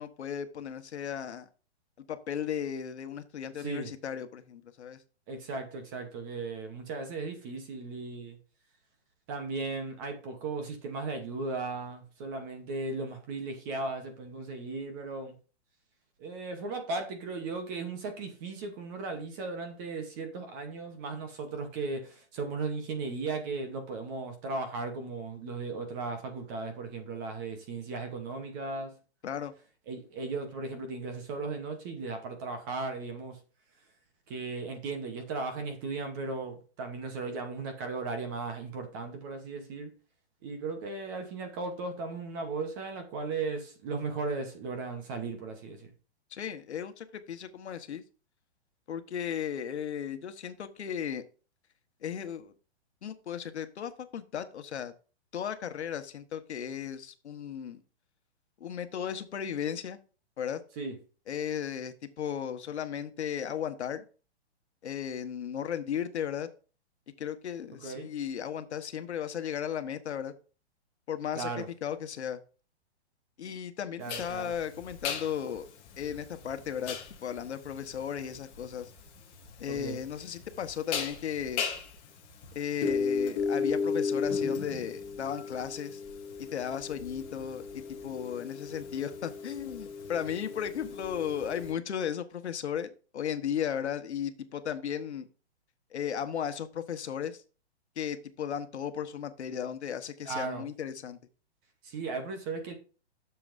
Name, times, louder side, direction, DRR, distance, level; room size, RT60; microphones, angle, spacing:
voice 1, 0.0-1.5 2.1-5.0 29.2-29.5 46.3-48.0 48.9-51.2 52.0-52.5 53.0-54.9 55.3-57.8 58.6-60.0 60.4-60.6 61.3-64.0 64.8-66.5 67.2-70.3 71.1-72.4 73.4-75.7 76.0-78.9 79.6-81.6 82.5-86.0 86.5-95.3 95.9-97.4 98.0-101.2, left 8 dB, 80° left, 1.2 m, -35 dB
voice 2, 3.6-3.9 5.3-8.4 9.3-15.3 16.2-28.9 29.9-33.4 34.3-39.9 40.4-45.9 60.8-61.0 67.8-68.1 71.3-71.7 74.0-74.5 79.7-80.0 100.2-100.6 101.8-102.8, right 3 dB, 20° right, 0.9 m, -36 dB
sound 1, 74.1-91.7, left 5 dB, 15° left, 1.2 m, -35 dB
11.0 x 7.0 x 2.6 m
hypercardioid pair, 170°, 34 cm